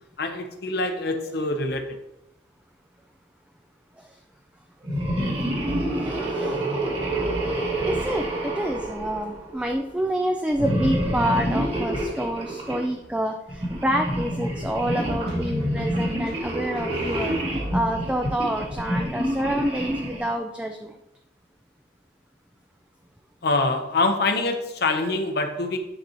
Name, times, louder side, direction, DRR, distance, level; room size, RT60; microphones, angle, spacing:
voice 1, 0.2-1.8 23.4-25.8, left 2 dB, 60° left, 5 dB, 0.8 m, -25 dB
sound 1, 4.8-9.7 10.5-12.9 13.5-20.3, right 1 dB, 30° right, 1.5 m, -27 dB
voice 2, 6.0-6.6 7.8-17.3 17.7-20.9, right 1 dB, 5° right, 3 dB, 0.3 m, -28 dB
sound 2, 12.6-13.2 15.3-17.9, equal, 60° right, 2.3 m, -39 dB
10.0 x 4.0 x 3.0 m, 0.89 s
head